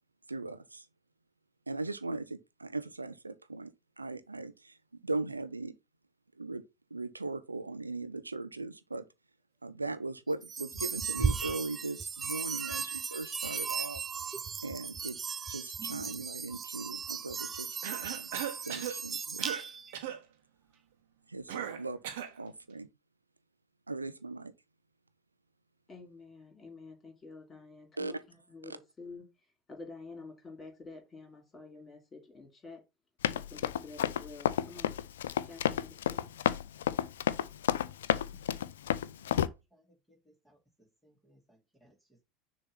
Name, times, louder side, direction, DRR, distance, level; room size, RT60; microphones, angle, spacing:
voice 1, 0.3-0.9 1.7-3.7 4.0-5.8 6.4-6.6 6.9-9.0 9.6-14.0 14.6-15.2 15.5-18.3 18.6-19.5 21.3-22.0 22.4-22.9 23.9-24.5 28.0-28.1, right 3 dB, 85° right, 0.6 m, -39 dB
sound 1, 10.4-19.9, right 5 dB, 20° right, 0.6 m, -36 dB
Cough, 17.8-19.0 19.4-19.7 19.9-20.2 21.5-22.4, right 9 dB, 60° right, 1.1 m, -37 dB
voice 2, 25.9-32.8 33.3-35.0 35.4-36.3, left 3 dB, 25° left, 3.2 m, -49 dB
Run, 33.2-39.5, left 10 dB, 70° left, 0.4 m, -30 dB
voice 3, 38.3-38.8 39.3-42.2, equal, ahead, 2.7 m, -65 dB
6.5 x 3.1 x 5.8 m
figure-of-eight pair, 75°, 0 cm